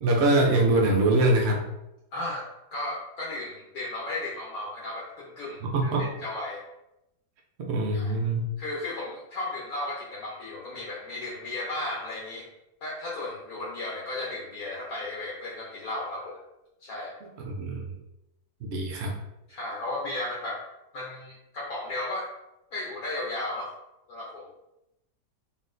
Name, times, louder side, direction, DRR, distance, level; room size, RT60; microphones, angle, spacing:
voice 1, 0.0-1.6 5.6-6.1 7.6-8.5 17.4-17.9 18.7-19.1, right 2 dB, 75° right, 0 dB, 0.6 m, -23 dB
voice 2, 2.1-6.6 7.9-8.2 8.6-12.5 12.8-16.4 16.8-17.1 19.5-20.6 20.9-22.3 22.7-23.7 24.1-24.4, left 2 dB, 65° left, -5 dB, 1.2 m, -35 dB
4.0 x 3.7 x 2.5 m, 0.90 s
omnidirectional pair, 1.8 m